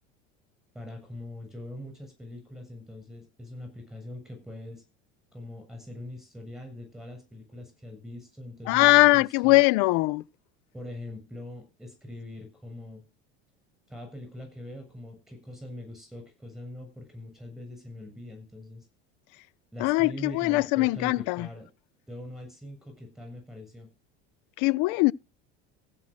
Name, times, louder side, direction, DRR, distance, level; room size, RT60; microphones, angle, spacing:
voice 1, 0.7-4.8 5.3-9.6 10.7-13.0 13.9-18.9 19.7-21.7 22.1-23.9, left 1 dB, ahead, 7.2 m, -42 dB
voice 2, 8.7-10.2 19.8-21.5 24.6-25.1, left 23 dB, 60° left, 0.5 m, -21 dB
15.5 x 6.1 x 6.3 m
hypercardioid pair, 90°, 34 cm